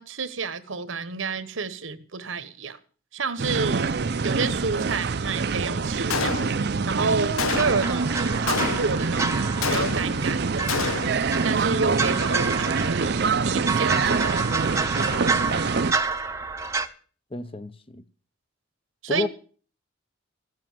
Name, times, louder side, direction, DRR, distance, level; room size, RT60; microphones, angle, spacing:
voice 1, 0.0-2.8 3.1-3.9 4.2-10.7 11.4-14.2 19.0-19.3, right 4 dB, 75° right, 1.1 m, -30 dB
sound 1, 3.4-15.9, right 4 dB, 50° right, 0.5 m, -25 dB
Gunshot gunfire, 6.1-6.8 7.4-8.0 8.5-9.1 9.6-10.3 10.7-11.3, left 5 dB, 90° left, 0.8 m, -28 dB
sound 2, 7.5-16.9, right 4 dB, 15° right, 0.7 m, -29 dB
voice 2, 15.0-15.7 17.3-18.0 19.1-19.3, left 3 dB, 25° left, 0.6 m, -32 dB
14.5 x 7.6 x 7.6 m
head